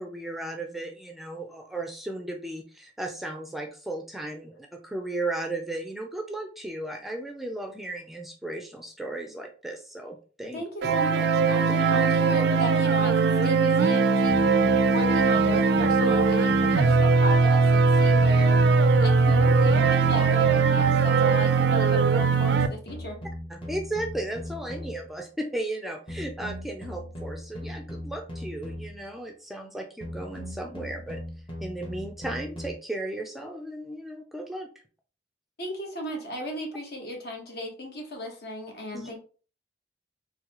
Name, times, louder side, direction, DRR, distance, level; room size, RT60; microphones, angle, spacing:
voice 1, 0.0-10.6 23.5-31.2 31.6-34.7 38.9-39.1, right 2 dB, ahead, 3 dB, 0.4 m, -35 dB
voice 2, 10.5-14.4 14.9-18.6 19.0-23.2 35.6-39.2, equal, 60° left, 2 dB, 1.1 m, -35 dB
sound 1, 10.8-22.7, right 4 dB, 65° right, 0.4 m, -20 dB
sound 2, 14.3-17.3 18.2-21.2 22.1-25.1 26.1-29.1 30.0-32.7, equal, 30° left, 1.0 m, -39 dB
4.0 x 2.6 x 2.9 m, 0.38 s
head